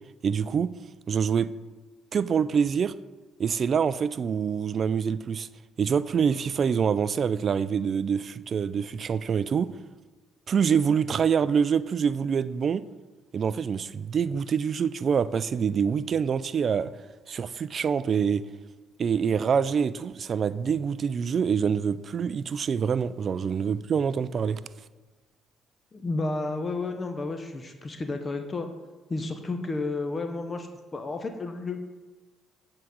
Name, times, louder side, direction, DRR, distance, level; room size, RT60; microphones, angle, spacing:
voice 1, 0.2-0.7 1.1-1.5 2.1-2.9 3.4-5.5 5.8-9.7 10.5-12.8 13.3-16.9 17.3-18.4 19.0-24.6, right 7 dB, 50° right, 16 dB, 0.3 m, -25 dB
voice 2, 25.9-28.7 29.1-31.8, left 3 dB, 35° left, 6 dB, 0.7 m, -32 dB
7.7 x 3.8 x 6.2 m, 1.2 s
hypercardioid pair, 55°, 0 cm